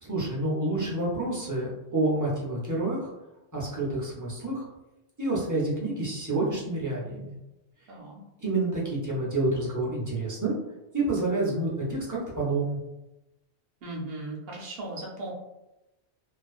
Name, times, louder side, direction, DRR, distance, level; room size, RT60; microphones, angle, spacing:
voice 1, 0.0-3.1 3.5-4.6 5.2-7.3 8.4-10.6 10.9-12.8, right 2 dB, 25° right, -6 dB, 0.5 m, -28 dB
voice 2, 7.9-8.2 13.8-15.3, right 2 dB, 65° right, -3 dB, 0.8 m, -37 dB
2.4 x 2.2 x 2.3 m, 0.95 s
omnidirectional pair, 1.1 m